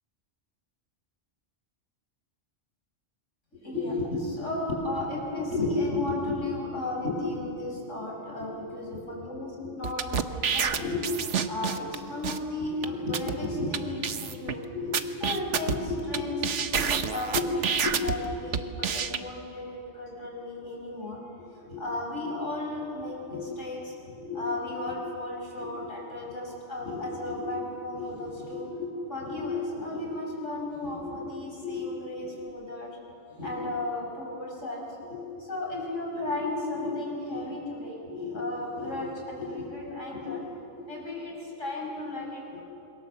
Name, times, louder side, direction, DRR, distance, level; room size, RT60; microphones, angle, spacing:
voice 1, 3.5-11.1 11.4-33.0 33.3-40.4 40.7-42.6, left 2 dB, 85° left, -1 dB, 6.2 m, -33 dB
sound 1, 9.8-11.9 12.2-12.4 12.8-12.9 13.1-13.3 13.7-13.8 14.0-14.5 14.9-16.2 16.4-18.1 18.5-19.2, right 7 dB, 70° right, 1.3 m, -28 dB
27.5 x 22.5 x 7.4 m, 2.8 s
omnidirectional pair, 1.3 m